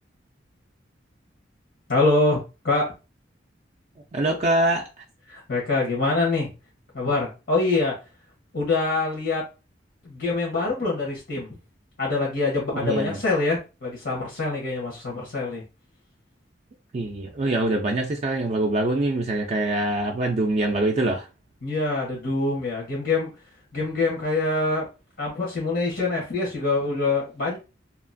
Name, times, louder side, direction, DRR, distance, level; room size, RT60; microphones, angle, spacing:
voice 1, 1.9-2.9 5.3-6.5 6.9-8.0 8.5-9.4 10.0-11.6 12.0-15.6 21.6-23.3 23.7-24.9 25.2-27.6, left 3 dB, 80° left, 1.2 m, -25 dB
voice 2, 4.1-4.8 12.8-13.2 16.9-21.3, right 2 dB, 40° right, 0.4 m, -24 dB
2.9 x 2.4 x 2.5 m
head